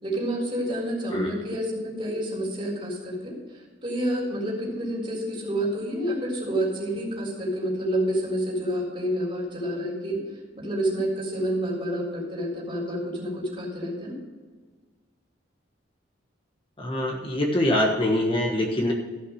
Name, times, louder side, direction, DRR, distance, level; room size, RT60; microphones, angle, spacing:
voice 1, 0.0-10.2 10.6-14.2, right 1 dB, 30° right, -4 dB, 3.8 m, -29 dB
voice 2, 16.8-18.9, left 1 dB, 30° left, -1 dB, 1.3 m, -24 dB
14.5 x 5.9 x 6.4 m, 1.5 s
head